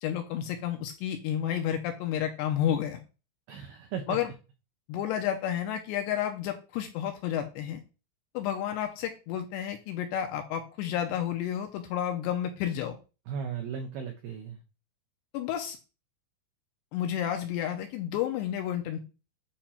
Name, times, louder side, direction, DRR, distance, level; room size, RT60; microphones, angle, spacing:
voice 1, 0.0-3.0 4.1-4.3 4.9-7.8 8.3-13.0 15.3-15.8 16.9-19.0, left 10 dB, 80° left, 5 dB, 2.6 m, -31 dB
voice 2, 3.5-4.2 13.3-14.6, right 7 dB, 85° right, 4 dB, 2.1 m, -36 dB
8.6 x 2.9 x 5.6 m, 0.32 s
omnidirectional pair, 5.5 m